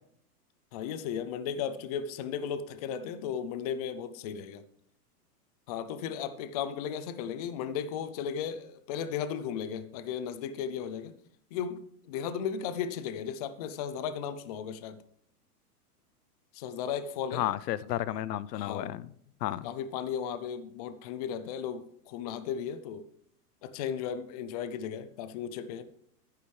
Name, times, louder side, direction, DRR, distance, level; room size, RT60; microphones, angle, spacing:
voice 1, 0.7-4.6 5.7-11.2 11.5-15.0 16.5-17.5 18.5-18.9 19.6-23.1 23.6-25.8, left 8 dB, 25° left, 0.4 m, -35 dB
voice 2, 17.3-19.1 19.4-19.7, left 13 dB, 85° left, 0.6 m, -32 dB
10.5 x 9.8 x 3.2 m
hypercardioid pair, 140°, 47 cm